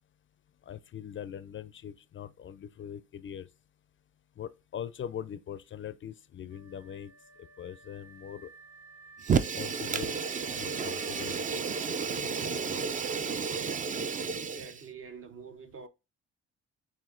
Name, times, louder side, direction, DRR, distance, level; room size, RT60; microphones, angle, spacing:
voice 1, 0.7-3.5 4.4-7.1 7.6-8.5 9.3-10.2 10.5-11.4 12.0-12.2 12.7-12.8, left 9 dB, 40° left, 0.4 m, -42 dB
Wind instrument woodwind instrument, 6.5-13.5, right 3 dB, 70° right, 1.1 m, -54 dB
Fire, 9.2-14.8, right 6 dB, 25° right, 0.4 m, -31 dB
voice 2, 14.3-15.9, right 5 dB, 45° right, 0.8 m, -46 dB
7.4 x 2.6 x 2.4 m
cardioid pair, 90°, 30 cm